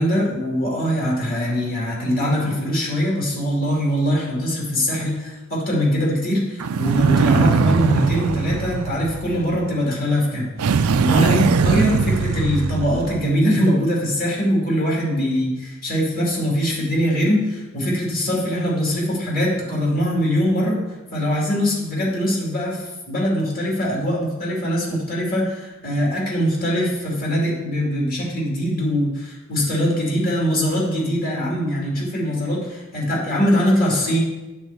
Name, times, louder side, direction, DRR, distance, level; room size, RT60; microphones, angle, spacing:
voice 1, 0.0-20.8 21.1-34.2, equal, 40° left, -4 dB, 2.6 m, -22 dB
sound 1, 6.6-9.7 10.6-13.3, right 5 dB, 85° right, 0.4 m, -20 dB
8.9 x 4.4 x 6.8 m, 1.1 s
head